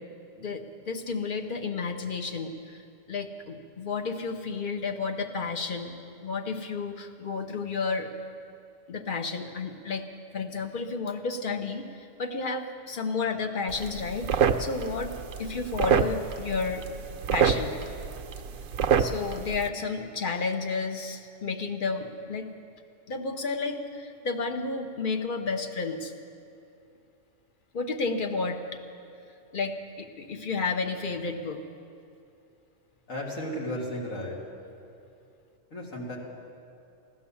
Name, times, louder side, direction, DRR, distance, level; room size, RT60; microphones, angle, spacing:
voice 1, 0.4-2.8 3.1-8.1 8.9-10.0 10.3-15.1 15.4-16.8 17.3-17.8 19.0-22.5 23.1-26.1 27.7-28.6 29.5-31.6, left 4 dB, 45° left, 6 dB, 1.0 m, -32 dB
sound 1, 13.7-19.7, right 7 dB, 75° right, 1.1 m, -28 dB
voice 2, 33.1-34.4 35.7-36.2, equal, 75° left, -4 dB, 2.8 m, -34 dB
16.0 x 11.5 x 7.1 m, 2.6 s
omnidirectional pair, 1.4 m